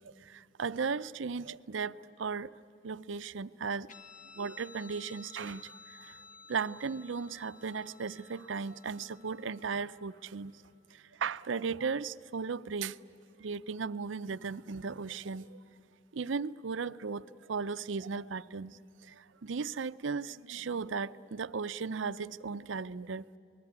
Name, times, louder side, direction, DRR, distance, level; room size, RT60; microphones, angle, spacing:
voice 1, 0.0-2.5 2.8-3.9 4.4-6.2 6.5-10.5 11.2-13.0 13.4-15.6 16.1-17.2 17.5-18.8 19.1-23.2, right 5 dB, 75° right, 0.6 m, -36 dB
Guitar, 3.9-10.8, left 4 dB, 40° left, 1.2 m, -55 dB
27.0 x 20.0 x 9.6 m
head